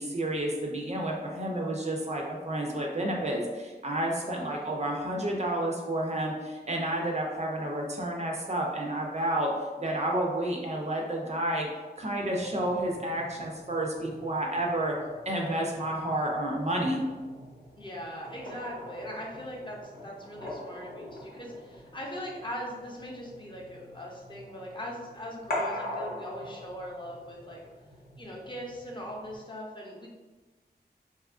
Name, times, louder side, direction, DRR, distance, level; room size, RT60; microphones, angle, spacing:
voice 1, 0.0-9.5 9.8-11.7 12.0-14.9 15.3-17.0, right 1 dB, 40° right, 0 dB, 0.4 m, -30 dB
voice 2, 4.2-4.9 17.8-27.6 28.2-30.1, equal, 25° left, -3 dB, 0.5 m, -40 dB
sound 1, 12.3-29.4, left 1 dB, 65° left, 0.7 m, -43 dB
2.7 x 2.4 x 2.3 m, 1.3 s
wide cardioid pair, 75°, 17 cm